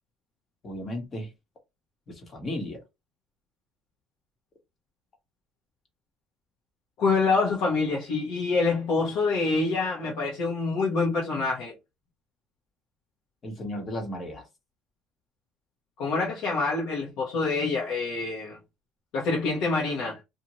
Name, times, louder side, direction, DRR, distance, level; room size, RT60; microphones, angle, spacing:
voice 1, 0.6-1.3 2.1-2.8 13.4-14.5, left 1 dB, 35° left, 1.2 m, -34 dB
voice 2, 7.0-11.7 16.0-18.6 19.1-20.2, left 3 dB, 65° left, 1.0 m, -26 dB
2.7 x 2.5 x 2.9 m
cardioid pair, 130°, 0 cm